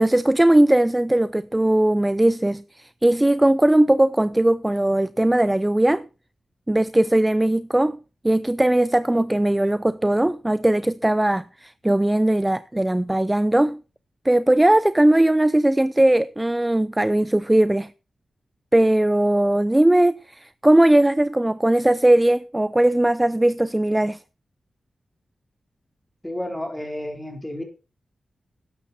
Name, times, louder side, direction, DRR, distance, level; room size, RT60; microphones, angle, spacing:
voice 1, 0.0-6.0 6.7-8.0 8.2-13.8 14.2-17.9 18.7-24.2, right 1 dB, 15° right, 0.5 m, -19 dB
voice 2, 26.2-27.6, left 1 dB, 10° left, 3.7 m, -31 dB
12.5 x 10.0 x 4.2 m
cardioid pair, 60°, 0 cm